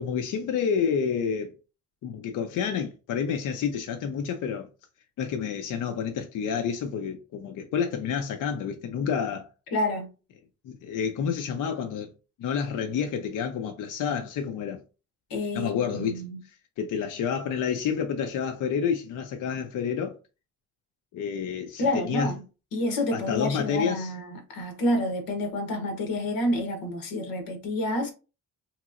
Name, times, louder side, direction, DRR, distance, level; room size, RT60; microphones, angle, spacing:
voice 1, 0.0-1.5 2.0-4.7 5.2-9.5 10.6-12.1 12.4-14.8 15.5-16.2 16.8-20.2 21.1-22.3 23.1-24.1, left 7 dB, 65° left, 0.5 m, -29 dB
voice 2, 9.7-10.1 15.3-16.4 21.8-22.4 22.7-28.1, left 1 dB, 85° left, 1.0 m, -28 dB
3.0 x 2.9 x 2.4 m
cardioid pair, 95°, 34 cm